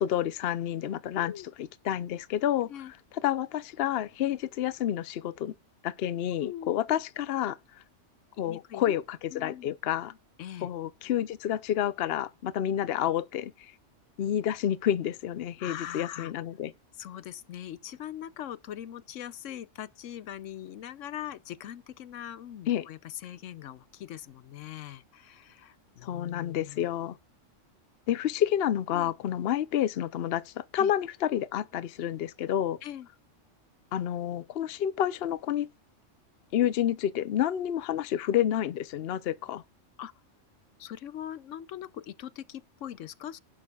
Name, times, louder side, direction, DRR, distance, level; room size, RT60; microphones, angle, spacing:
voice 1, 0.0-1.3 1.8-2.7 3.2-5.5 5.8-7.6 8.4-10.2 10.6-13.5 14.2-16.7 22.7-22.9 26.0-27.2 28.1-32.8 33.9-35.7 36.5-39.6, left 11 dB, 60° left, 0.8 m, -29 dB
voice 2, 1.1-1.5 2.7-2.9 6.4-6.8 8.4-8.9 9.3-9.7 10.4-10.7 15.6-16.3 17.0-26.9 28.9-29.1 30.7-30.9 32.8-33.1 40.0-40.1 40.8-43.4, left 11 dB, 85° left, 1.0 m, -41 dB
18.0 x 6.3 x 2.4 m
omnidirectional pair, 1.3 m